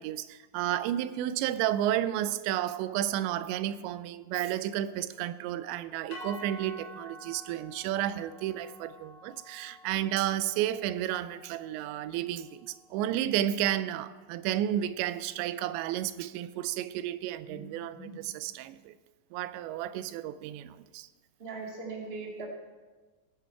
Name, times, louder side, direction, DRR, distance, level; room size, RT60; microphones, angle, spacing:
voice 1, 0.0-19.0 19.3-21.1, right 12 dB, 85° right, 2.8 m, -32 dB
sound 1, 6.1-14.4, left 1 dB, 65° left, 1.6 m, -50 dB
voice 2, 21.4-22.4, right 3 dB, 25° right, 1.2 m, -40 dB
20.0 x 9.1 x 4.6 m
omnidirectional pair, 5.1 m